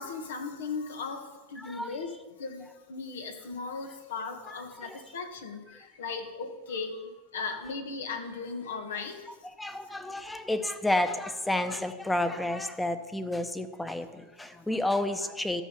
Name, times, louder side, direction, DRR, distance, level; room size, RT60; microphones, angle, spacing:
voice 1, 0.0-2.1 2.4-9.3, left 4 dB, 85° left, 5 dB, 1.7 m, -37 dB
voice 2, 1.6-2.0 4.4-5.0 5.7-5.8 6.1-6.2 7.5-7.6 9.3-15.6, left 1 dB, 5° left, 10 dB, 0.8 m, -31 dB
13.5 x 5.5 x 6.8 m, 1.2 s
hypercardioid pair, 120°, 0 cm